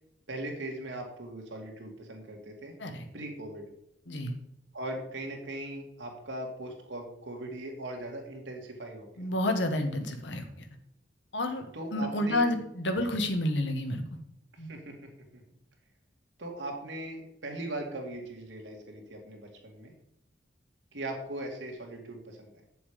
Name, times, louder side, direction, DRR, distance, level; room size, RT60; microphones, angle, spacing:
voice 1, 0.3-2.7 3.1-3.7 4.7-9.3 11.7-12.5 14.6-14.9 15.3-15.4 16.4-19.9 20.9-22.5, right 1 dB, 85° right, 1 dB, 2.3 m, -39 dB
voice 2, 9.2-10.6 11.3-11.7 11.9-14.2 14.6-14.7, left 1 dB, 75° left, 6 dB, 1.4 m, -30 dB
8.5 x 7.0 x 5.0 m, 0.80 s
head